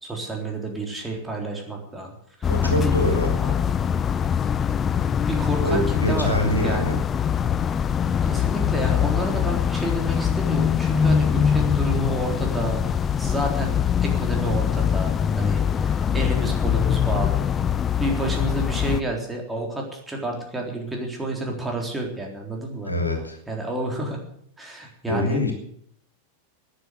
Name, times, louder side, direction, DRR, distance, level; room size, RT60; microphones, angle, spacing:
voice 1, 0.0-2.1 2.4-3.0 3.4-3.5 5.3-7.0 8.2-12.8 13.2-13.8 14.0-17.5 18.0-22.9 23.5-24.2 24.6-25.4, right 1 dB, 10° right, 0 dB, 3.7 m, -30 dB
sound 1, 2.4-19.0, left 8 dB, 25° left, 0.6 m, -23 dB
voice 2, 2.5-3.4 5.6-7.0 22.9-23.4 25.1-25.5, left 1 dB, 85° left, 3 dB, 3.0 m, -24 dB
13.5 x 10.0 x 8.2 m, 0.69 s
figure-of-eight pair, 90°, 0 cm